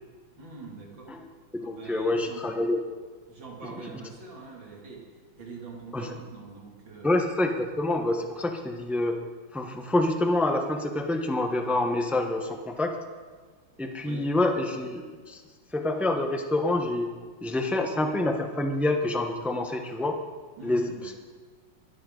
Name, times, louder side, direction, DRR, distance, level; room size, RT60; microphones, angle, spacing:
voice 1, 0.4-1.2 1.6-2.5 3.3-5.1 5.4-7.1 14.0-14.2 20.6-21.2, right 4 dB, 65° right, -2 dB, 3.5 m, -43 dB
voice 2, 1.6-2.8 3.8-3.9 5.9-6.1 7.0-9.2 9.5-12.9 13.8-15.4 15.7-17.1 17.4-20.2 20.6-20.9, left 2 dB, ahead, 4 dB, 0.6 m, -27 dB
24.0 x 13.0 x 4.0 m, 1.5 s
omnidirectional pair, 2.2 m